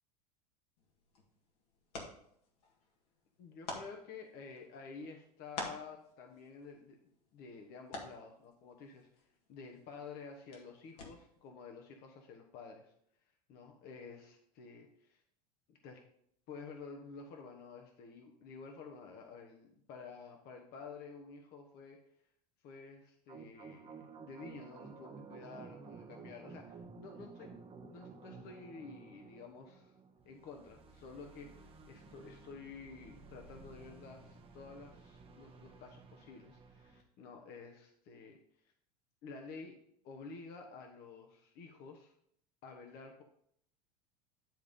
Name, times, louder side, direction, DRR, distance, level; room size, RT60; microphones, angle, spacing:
sound 1, 0.8-11.5, left 3 dB, 70° left, 1.9 m, -50 dB
voice 1, 3.4-7.0 7.3-12.9 13.5-15.2 15.7-16.0 16.5-22.0 22.6-27.5 27.9-29.9 30.2-38.4 38.6-38.7 39.2-39.8 40.0-42.1 42.6-43.2, left 4 dB, 50° left, 3 dB, 1.2 m, -51 dB
sound 2, 23.3-37.0, right 4 dB, 30° right, 1.2 m, -54 dB
10.5 x 3.6 x 5.3 m, 0.70 s
hypercardioid pair, 85°, 20 cm